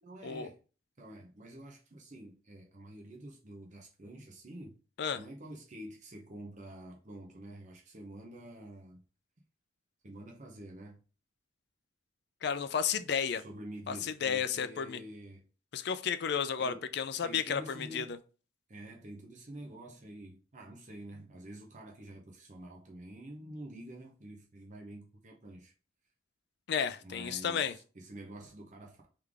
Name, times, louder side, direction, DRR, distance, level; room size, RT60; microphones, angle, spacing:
voice 1, 0.0-0.6 1.0-4.7 5.1-9.0 10.0-11.0 13.3-15.4 16.6-16.8 17.2-18.1 18.7-25.7 27.0-29.1, right 1 dB, 40° right, 0.8 m, -48 dB
voice 2, 12.4-13.4 13.9-15.0 15.7-18.1 26.7-27.7, left 7 dB, 60° left, 0.4 m, -32 dB
3.7 x 3.3 x 3.5 m
head